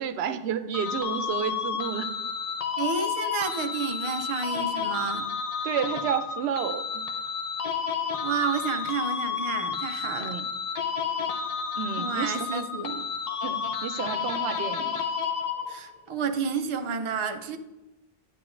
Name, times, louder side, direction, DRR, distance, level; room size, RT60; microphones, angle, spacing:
voice 1, 0.0-2.1 5.6-7.0 10.2-10.5 11.8-12.6 13.4-15.0, right 8 dB, 85° right, 11 dB, 0.8 m, -31 dB
sound 1, 0.7-16.0, left 6 dB, 45° left, 0.6 m, -31 dB
voice 2, 2.8-5.3 8.2-10.3 12.0-13.0 15.7-17.6, right 5 dB, 40° right, 7 dB, 0.5 m, -30 dB
9.8 x 8.2 x 2.5 m, 1.0 s
omnidirectional pair, 1.0 m